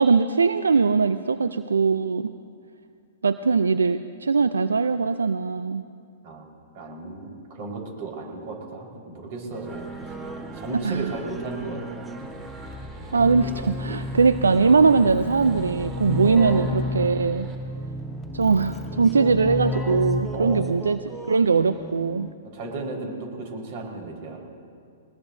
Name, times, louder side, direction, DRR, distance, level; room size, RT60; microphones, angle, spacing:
voice 1, 0.0-2.3 3.2-5.8 10.8-11.1 13.1-17.5 18.3-21.0 21.3-22.3, right 4 dB, 85° right, 12 dB, 0.4 m, -21 dB
voice 2, 6.7-12.0 16.1-16.4 20.3-20.7 22.5-24.4, right 3 dB, 50° right, 0 dB, 4.6 m, -35 dB
sound 1, 9.5-22.3, right 2 dB, 5° right, 0.9 m, -39 dB
sound 2, 9.6-17.5, right 2 dB, 30° right, 2.6 m, -45 dB
Keyboard (musical), 12.7-21.0, left 2 dB, 15° left, 2.7 m, -32 dB
21.5 x 20.0 x 2.7 m, 2.3 s
hypercardioid pair, 120°, 0 cm